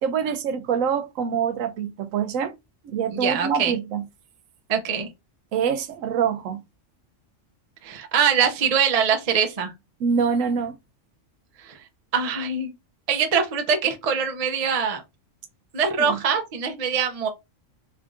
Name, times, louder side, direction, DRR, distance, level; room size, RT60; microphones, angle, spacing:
voice 1, 0.0-2.5 2.8-4.0 5.5-6.6 10.0-10.8 16.0-16.2, right 7 dB, 85° right, 1.0 m, -25 dB
voice 2, 3.1-3.7 4.7-5.1 7.8-9.7 11.6-11.8 12.1-12.7 13.1-15.0 15.7-17.3, right 6 dB, 40° right, 0.6 m, -23 dB
3.6 x 3.3 x 2.5 m
omnidirectional pair, 1.3 m